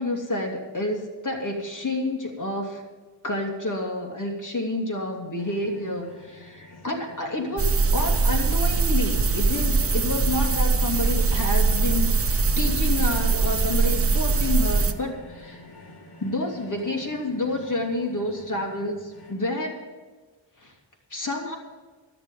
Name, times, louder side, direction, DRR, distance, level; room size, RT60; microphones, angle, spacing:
voice 1, 0.0-2.8 3.2-15.6 16.2-19.8 20.6-20.7 21.1-21.6, left 2 dB, 40° left, 1 dB, 2.9 m, -29 dB
sound 1, 5.4-19.3, left 1 dB, 55° left, 2.7 m, -47 dB
sound 2, 7.6-14.9, right 4 dB, 30° right, 0.9 m, -22 dB
13.5 x 6.9 x 9.1 m, 1.3 s
cardioid pair, 60°, 45 cm